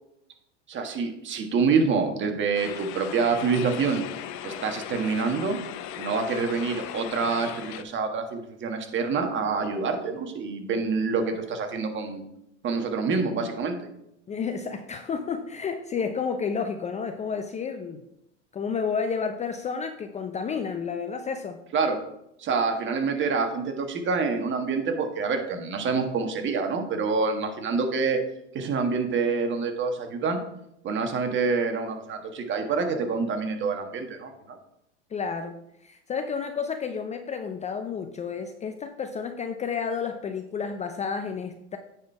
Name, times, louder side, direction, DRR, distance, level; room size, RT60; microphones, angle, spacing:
voice 1, 0.7-4.0 4.4-5.6 6.0-12.2 12.6-13.7 21.7-22.0 22.4-28.2 28.5-30.4 30.8-34.6, right 4 dB, 35° right, 5 dB, 1.5 m, -26 dB
sound 1, 2.5-7.8, left 11 dB, 50° left, 0.9 m, -37 dB
voice 2, 14.3-18.0 18.5-21.6 35.1-35.5 35.8-41.8, left 6 dB, 20° left, 6 dB, 0.5 m, -31 dB
9.3 x 4.4 x 4.8 m, 0.81 s
hypercardioid pair, 100°, 35 cm